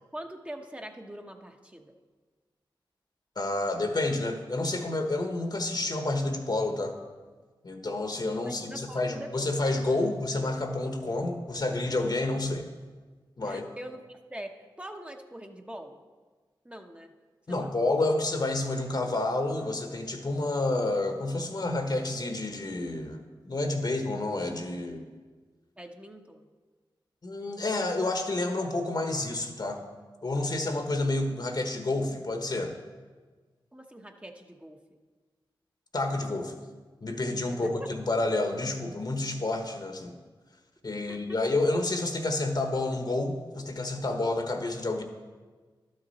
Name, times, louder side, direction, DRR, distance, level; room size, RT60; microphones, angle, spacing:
voice 1, 0.1-1.9 8.4-9.5 13.4-16.0 16.6-17.1 17.5-17.7 25.8-26.5 33.7-34.8 37.6-37.9 41.1-41.4, right 1 dB, 15° right, 4 dB, 0.8 m, -43 dB
voice 2, 3.4-6.9 7.6-12.7 13.4-13.6 17.5-25.1 27.2-29.8 30.2-32.7 35.9-36.6 37.0-40.1 40.8-45.0, left 2 dB, 50° left, 5 dB, 1.1 m, -29 dB
11.5 x 6.6 x 4.2 m, 1.4 s
cardioid pair, 40°, 9 cm